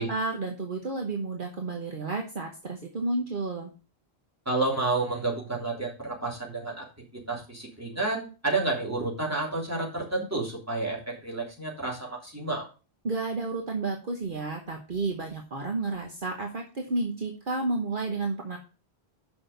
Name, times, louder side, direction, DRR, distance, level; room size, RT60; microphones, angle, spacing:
voice 1, 0.0-3.7 13.0-18.6, right 3 dB, 55° right, 2 dB, 1.3 m, -31 dB
voice 2, 4.4-6.8 7.3-12.7, right 3 dB, 15° right, -3 dB, 3.3 m, -30 dB
6.3 x 5.9 x 6.7 m, 0.33 s
omnidirectional pair, 1.1 m